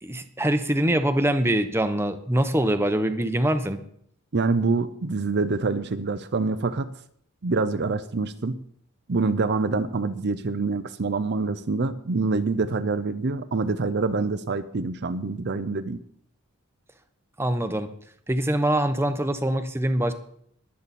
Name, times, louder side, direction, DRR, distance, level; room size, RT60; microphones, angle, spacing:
voice 1, 0.0-3.8 17.4-17.9 18.3-20.1, right 1 dB, 10° right, 8 dB, 0.9 m, -24 dB
voice 2, 4.3-6.9 7.4-8.6 9.1-16.0, right 3 dB, 50° right, 11 dB, 0.6 m, -26 dB
21.5 x 8.5 x 4.3 m, 0.66 s
head